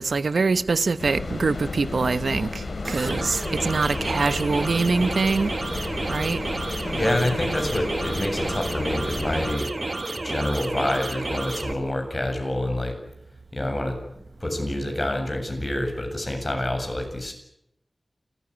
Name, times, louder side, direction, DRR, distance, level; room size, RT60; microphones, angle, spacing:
voice 1, 0.0-5.5 6.1-6.4, right 4 dB, 85° right, 1.1 m, -24 dB
sound 1, 1.0-9.5, left 3 dB, 70° left, 3.2 m, -33 dB
sound 2, 2.8-11.7, right 2 dB, 45° right, 1.8 m, -31 dB
voice 2, 6.9-9.8 10.2-13.0 13.5-14.0 14.4-17.3, left 1 dB, 25° left, 7.7 m, -27 dB
29.0 x 15.0 x 9.9 m
wide cardioid pair, 80°, 0 cm